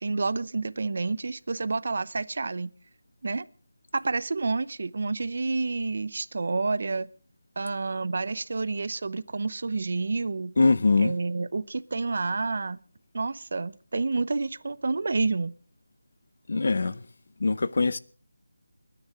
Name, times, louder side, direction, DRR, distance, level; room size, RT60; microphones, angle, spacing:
voice 1, 0.0-2.7 3.2-3.5 3.9-7.1 7.6-10.5 11.0-12.8 13.1-15.5, right 3 dB, 45° right, 0.7 m, -29 dB
voice 2, 10.6-11.1 16.5-17.0 17.4-18.0, left 3 dB, 45° left, 0.7 m, -22 dB
29.0 x 10.0 x 3.6 m
figure-of-eight pair, 175°, 0 cm